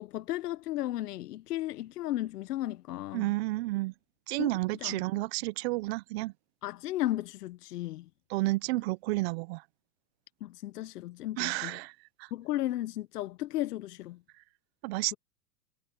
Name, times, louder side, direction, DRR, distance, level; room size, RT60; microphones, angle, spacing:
voice 1, 0.0-3.3 4.4-4.5 4.8-5.0 6.6-8.1 10.4-11.8 12.3-14.2, left 14 dB, 75° left, 0.9 m, -34 dB
voice 2, 3.1-3.9 4.3-6.3 8.3-9.6 11.4-12.3 14.8-15.2, right 21 dB, 40° right, 0.7 m, -31 dB
supercardioid pair, 145°, 47 cm